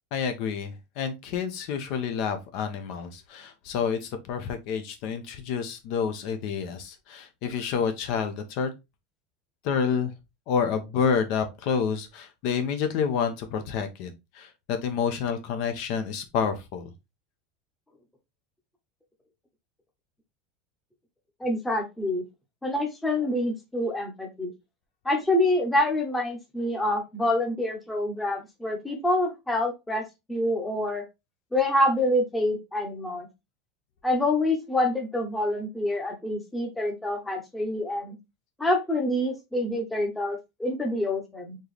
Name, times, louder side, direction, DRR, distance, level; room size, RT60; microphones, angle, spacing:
voice 1, 0.1-8.7 9.6-10.1 10.5-16.9, left 6 dB, 50° left, 0.8 m, -29 dB
voice 2, 21.4-22.2 22.6-24.5 25.0-30.0 30.3-31.0 31.5-33.3 34.0-38.2 38.6-41.6, left 1 dB, 5° left, 0.9 m, -26 dB
4.4 x 3.1 x 3.3 m
supercardioid pair, 165°, 0 cm